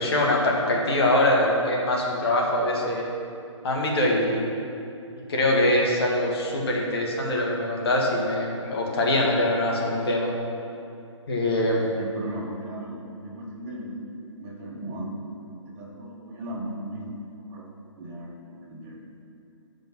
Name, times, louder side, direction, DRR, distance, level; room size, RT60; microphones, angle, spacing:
voice 1, 0.0-3.0 3.6-4.5 5.3-10.3 11.3-11.9, left 1 dB, 50° left, -1 dB, 1.8 m, -23 dB
voice 2, 11.6-13.9 14.4-15.1 15.3-17.7 18.0-18.3 18.6-19.0, right 1 dB, 25° right, -5 dB, 1.8 m, -37 dB
7.5 x 5.3 x 6.1 m, 2.7 s
hypercardioid pair, 145°, 16 cm